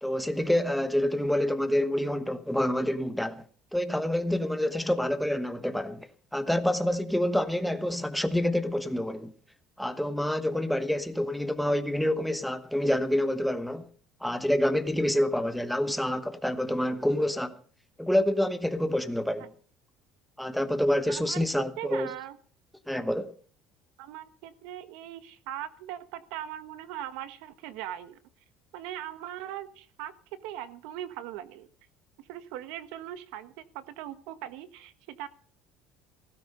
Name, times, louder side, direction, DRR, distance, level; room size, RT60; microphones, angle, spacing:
voice 1, 0.0-3.4 3.7-9.3 9.8-13.9 14.2-17.6 18.0-19.5 20.4-22.1 22.9-23.3, left 1 dB, ahead, 1.1 m, -27 dB
voice 2, 21.1-21.5 21.8-22.4 24.0-28.2 28.7-31.7 32.3-35.3, right 12 dB, 80° right, 1.3 m, -40 dB
16.5 x 13.5 x 5.4 m
cardioid pair, 160°, 0 cm